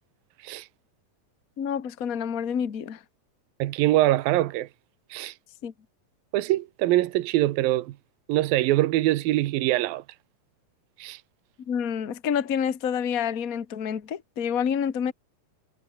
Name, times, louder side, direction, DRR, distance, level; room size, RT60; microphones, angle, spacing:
voice 1, 1.6-3.0 5.6-5.7 11.7-15.1, left 8 dB, 75° left, 0.7 m, -28 dB
voice 2, 3.6-4.7 5.1-5.3 6.3-7.9 8.3-10.0 11.0-11.2, right 16 dB, 85° right, 2.8 m, -23 dB
omnidirectional pair, 4.1 m